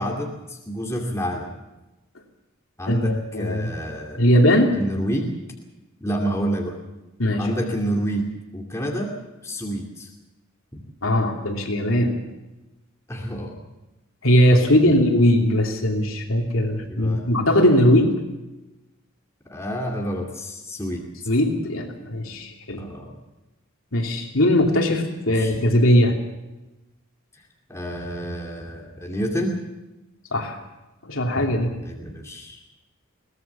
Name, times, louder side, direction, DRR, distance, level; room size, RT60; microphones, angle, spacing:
voice 1, 0.0-1.5 2.8-4.2 4.7-5.3 6.0-6.8 7.4-9.1 9.4-10.1 10.7-10.8 13.1-13.6 16.9-17.3 19.5-21.1 22.7-23.1 25.3-25.6 27.7-29.6 31.8-32.6, equal, 15° left, 0 dB, 2.6 m, -28 dB
voice 2, 2.9-3.7 4.2-4.7 7.2-7.5 11.0-12.1 14.2-18.2 21.3-22.8 23.9-26.1 30.3-30.6 31.0-31.7, equal, 75° left, 2 dB, 3.0 m, -19 dB
22.5 x 18.0 x 7.1 m, 1.0 s
head